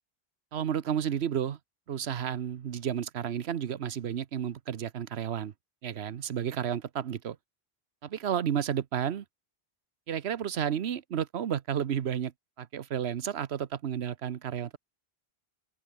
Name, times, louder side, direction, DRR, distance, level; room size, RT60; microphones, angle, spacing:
voice 1, 0.5-1.6 1.9-5.5 5.8-7.4 8.0-9.2 10.1-12.3 12.6-14.8, right 9 dB, 85° right, 1.1 m, -32 dB
omnidirectional pair, 1.1 m